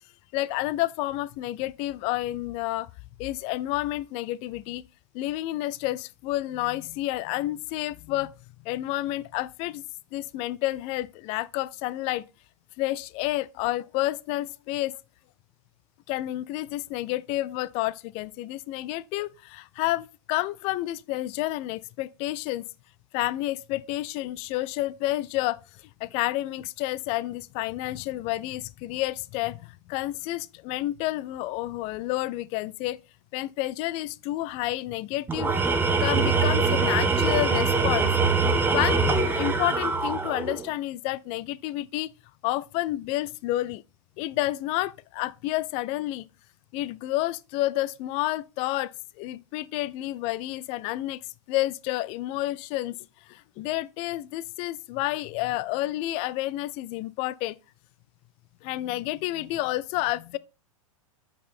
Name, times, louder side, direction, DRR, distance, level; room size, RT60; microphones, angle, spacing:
voice 1, 0.3-2.9 3.2-4.8 5.1-8.3 8.6-9.8 10.1-12.2 12.8-14.9 16.1-22.7 23.1-33.0 33.3-35.5 36.0-38.1 38.7-42.1 42.4-43.8 44.2-46.3 46.7-48.9 49.2-51.2 51.5-53.0 53.3-57.6 58.6-60.4, left 16 dB, 35° left, 0.4 m, -30 dB
Tools, 35.3-40.7, right 4 dB, 10° right, 0.9 m, -23 dB
8.2 x 4.6 x 3.5 m
figure-of-eight pair, 100°, 18 cm